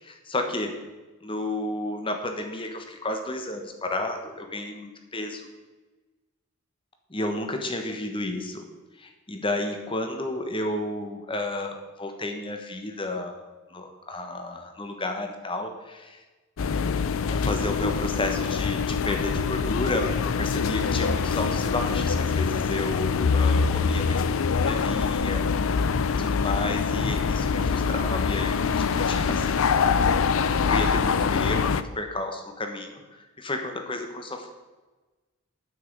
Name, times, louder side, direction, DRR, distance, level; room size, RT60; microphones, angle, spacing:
voice 1, 0.2-0.8 1.2-5.5 7.1-8.6 9.0-13.4 13.7-16.2 17.3-25.5 26.0-30.0 30.6-34.5, left 2 dB, 25° left, 5 dB, 1.3 m, -32 dB
sound 1, 16.6-31.8, left 5 dB, 65° left, 0.4 m, -24 dB
9.4 x 5.7 x 8.3 m, 1.2 s
head